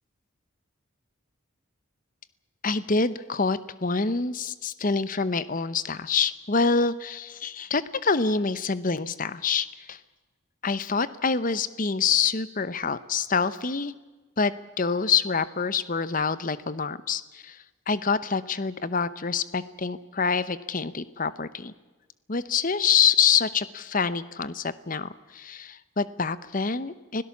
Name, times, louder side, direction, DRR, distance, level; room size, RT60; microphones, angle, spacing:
voice 1, 2.6-10.0 10.6-13.9 14.4-21.7 22.3-27.2, left 5 dB, 40° left, 16 dB, 0.8 m, -26 dB
25.5 x 17.0 x 7.2 m, 1.3 s
head